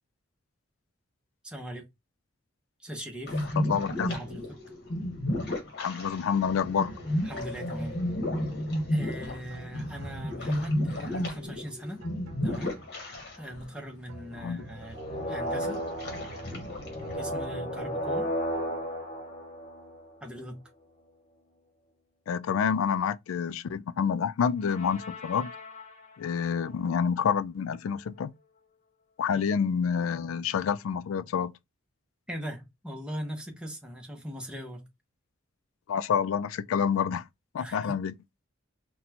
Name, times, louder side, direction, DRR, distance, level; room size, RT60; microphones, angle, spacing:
voice 1, 1.4-1.9 2.8-3.4 4.1-4.5 7.2-8.0 8.9-12.0 12.4-12.8 13.4-15.0 15.3-15.8 17.1-18.3 20.2-20.6 29.3-29.4 32.3-34.9 37.6-37.9, equal, 5° right, 0.8 m, -39 dB
sound 1, 3.3-13.7 14.0-14.1 14.7-15.1 15.6-17.4, left 1 dB, 50° left, 1.2 m, -33 dB
voice 2, 3.6-4.1 5.8-6.9 14.4-14.6 22.3-25.5 26.2-28.3 29.2-31.5 35.9-37.3 37.5-38.2, left 7 dB, 80° left, 0.3 m, -28 dB
sound 2, 6.3-13.8 14.1-17.8, right 3 dB, 80° right, 0.8 m, -48 dB
sound 3, 15.0-20.3 24.6-26.3, equal, 35° left, 0.7 m, -35 dB
4.1 x 2.2 x 2.8 m
head